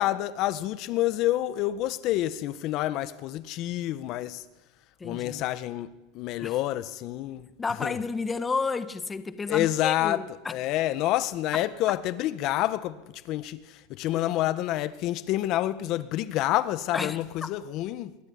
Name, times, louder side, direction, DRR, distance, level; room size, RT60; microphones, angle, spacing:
voice 1, 0.0-4.4 5.0-5.9 6.1-7.5 7.8-8.0 9.5-10.2 10.5-18.2, left 14 dB, 45° left, 1.6 m, -28 dB
voice 2, 5.0-5.5 6.4-6.6 7.6-10.5 11.5-11.6 16.9-17.5, left 4 dB, 15° left, 1.4 m, -31 dB
26.5 x 23.0 x 9.7 m
supercardioid pair, 140°, 0 cm